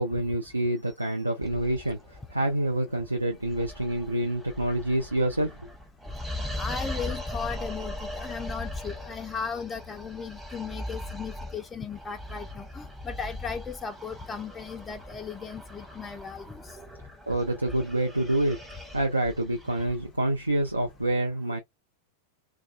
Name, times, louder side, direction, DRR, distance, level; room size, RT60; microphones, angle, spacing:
voice 1, 0.0-5.6 17.3-18.6 18.9-21.6, right 1 dB, 85° right, 0.4 m, -27 dB
sound 1, 1.4-21.1, left 1 dB, 15° right, 0.8 m, -40 dB
voice 2, 6.6-16.6, left 6 dB, 15° left, 0.3 m, -36 dB
2.3 x 2.2 x 2.4 m
figure-of-eight pair, 90°, 0 cm